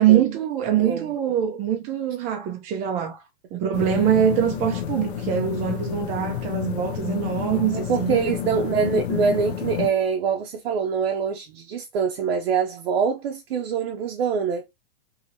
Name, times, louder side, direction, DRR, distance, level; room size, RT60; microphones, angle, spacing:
voice 1, 0.0-3.2 3.5-8.2, right 10 dB, 25° right, 0.4 m, -23 dB
voice 2, 0.8-1.1 3.8-4.0 7.7-14.7, right 6 dB, 65° right, 0.6 m, -24 dB
sound 1, 3.7-9.9, left 10 dB, 80° left, 0.7 m, -29 dB
2.8 x 2.7 x 2.7 m
hypercardioid pair, 130°, 32 cm